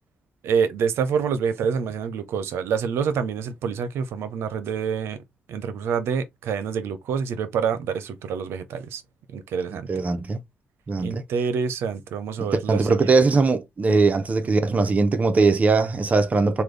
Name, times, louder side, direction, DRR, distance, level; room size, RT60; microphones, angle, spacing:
voice 1, 0.4-5.2 5.5-9.0 9.3-9.9 11.0-13.1, right 6 dB, 85° right, 0.6 m, -27 dB
voice 2, 9.9-10.4 10.9-11.2 12.4-16.6, right 4 dB, 35° right, 0.7 m, -20 dB
3.4 x 2.3 x 3.2 m
cardioid pair, 95°, 4 cm